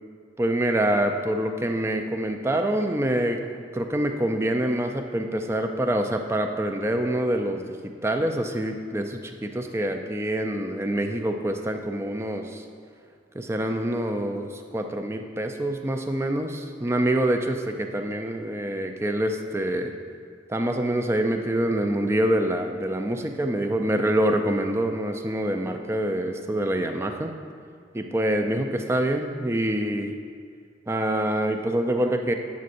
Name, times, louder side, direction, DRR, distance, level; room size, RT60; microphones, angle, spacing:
voice 1, 0.4-3.4 3.7-12.6 13.3-19.9 20.5-27.3 27.9-30.2 30.9-32.3, right 1 dB, 15° right, 5 dB, 0.3 m, -26 dB
9.3 x 7.4 x 2.6 m, 2.2 s
head